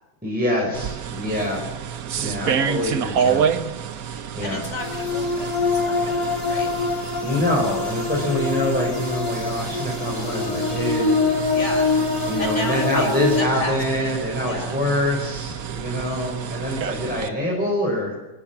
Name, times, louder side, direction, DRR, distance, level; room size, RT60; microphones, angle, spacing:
voice 1, 0.2-1.7 2.2-3.4 4.3-4.6 7.2-11.2 12.3-18.1, left 1 dB, 5° right, -4 dB, 5.5 m, -25 dB
sound 1, 0.7-17.3, right 8 dB, 55° right, 1.2 m, -29 dB
voice 2, 3.9-6.7 11.5-14.2 14.4-14.8 15.8-16.3 16.6-16.9, left 2 dB, 35° left, 5 dB, 4.3 m, -35 dB
sound 2, 4.8-13.4, left 4 dB, 70° left, 4.5 m, -24 dB
25.0 x 18.0 x 7.4 m, 1.0 s
omnidirectional pair, 2.1 m